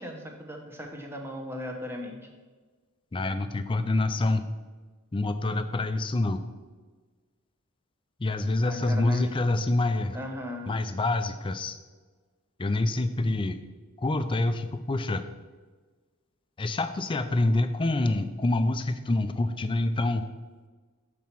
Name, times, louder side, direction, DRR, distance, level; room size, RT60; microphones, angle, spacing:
voice 1, 0.0-2.2 8.6-9.2 10.1-10.8, left 1 dB, 10° right, 2 dB, 0.9 m, -37 dB
voice 2, 3.1-4.5 5.1-6.4 8.2-10.2 10.7-11.8 12.6-13.6 14.0-15.2 16.6-20.3, left 2 dB, 25° left, 9 dB, 0.4 m, -26 dB
7.4 x 4.2 x 5.9 m, 1.4 s
head